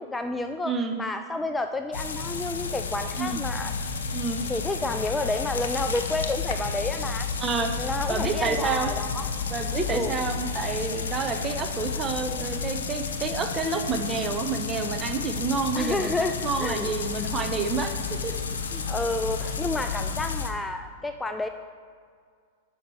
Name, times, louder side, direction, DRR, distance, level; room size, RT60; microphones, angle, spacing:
voice 1, 0.0-3.7 4.5-7.3 7.8-9.3 9.9-10.1 15.7-16.9 18.9-21.5, left 2 dB, 10° left, 7 dB, 0.3 m, -30 dB
voice 2, 0.6-1.0 3.2-3.4 4.1-4.5 7.4-7.8 8.1-8.9 9.5-16.1 16.4-18.4 18.7-18.8, right 4 dB, 25° right, 5 dB, 0.8 m, -29 dB
sound 1, 1.9-20.5, left 5 dB, 80° left, 0.7 m, -31 dB
6.1 x 5.9 x 5.5 m, 2.1 s
hypercardioid pair, 105°, 0 cm